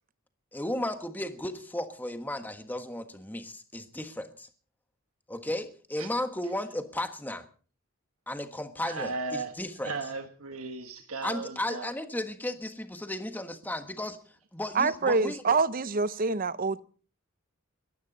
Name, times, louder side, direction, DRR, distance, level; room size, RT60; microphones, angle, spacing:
voice 1, 0.5-4.5 5.3-7.5 8.3-9.9 11.2-14.2 14.5-15.6, left 1 dB, 10° left, 1.4 m, -34 dB
voice 2, 8.8-9.5 9.8-11.9, right 3 dB, 80° right, 1.5 m, -36 dB
voice 3, 14.7-16.8, right 4 dB, 40° right, 0.7 m, -26 dB
21.5 x 15.0 x 4.1 m
head